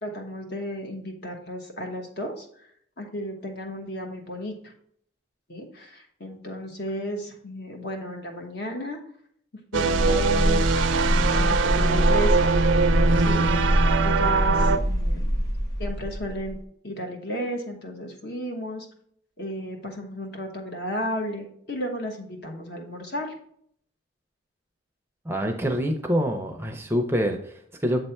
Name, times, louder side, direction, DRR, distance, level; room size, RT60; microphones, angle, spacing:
voice 1, 0.0-2.5 3.0-4.7 5.5-9.0 9.7-12.5 13.3-15.3 15.8-16.6 16.8-18.9 19.4-23.3, equal, 55° left, 2 dB, 1.2 m, -34 dB
sound 1, 9.7-14.8, right 4 dB, 75° right, 0.4 m, -22 dB
sound 2, 9.9-16.6, equal, 20° left, 0.9 m, -24 dB
voice 2, 25.2-28.0, equal, 10° right, 3 dB, 0.5 m, -26 dB
7.7 x 3.3 x 4.3 m, 0.66 s
head